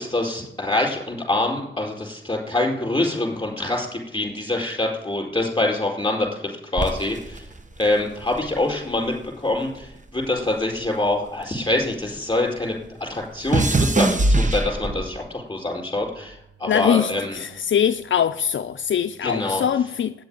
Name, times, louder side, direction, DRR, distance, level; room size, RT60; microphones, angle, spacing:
voice 1, 0.0-7.4 7.8-17.4 19.2-19.6, left 2 dB, 20° left, 4.6 m, -25 dB
sound 1, 6.8-9.3 9.5-12.2 12.5-15.3 16.0-16.4, right 2 dB, 40° right, 1.0 m, -24 dB
voice 2, 16.6-20.1, left 8 dB, 70° left, 0.4 m, -22 dB
9.2 x 7.6 x 9.0 m
wide cardioid pair, 65°, 20 cm